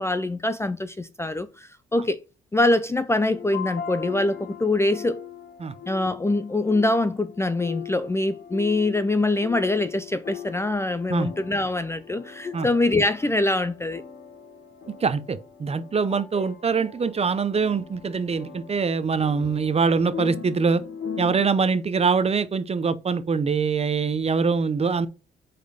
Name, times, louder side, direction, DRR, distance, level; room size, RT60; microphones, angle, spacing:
voice 1, 0.0-2.2 2.5-5.2 5.9-14.0, left 2 dB, 15° left, 0.4 m, -24 dB
sound 1, 3.3-21.4, left 7 dB, 70° left, 2.4 m, -40 dB
voice 2, 14.9-20.8 21.2-25.1, right 5 dB, 30° right, 0.6 m, -24 dB
5.2 x 4.3 x 4.9 m
cardioid pair, 90°, 20 cm